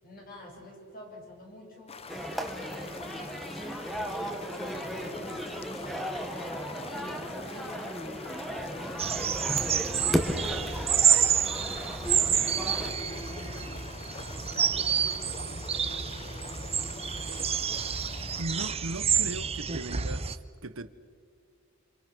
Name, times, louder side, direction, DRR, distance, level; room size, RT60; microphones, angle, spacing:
voice 1, 0.0-2.0 2.5-3.4 4.0-6.1 6.5-10.9 12.2-17.5, left 1 dB, 45° left, 7.5 m, -47 dB
sound 1, 1.9-18.4, left 4 dB, 30° left, 0.9 m, -45 dB
sound 2, 2.1-12.9, equal, ahead, 1.8 m, -35 dB
sound 3, 9.0-20.4, right 8 dB, 30° right, 0.8 m, -28 dB
voice 2, 18.4-20.9, right 2 dB, 85° right, 1.2 m, -38 dB
28.5 x 27.5 x 6.3 m
head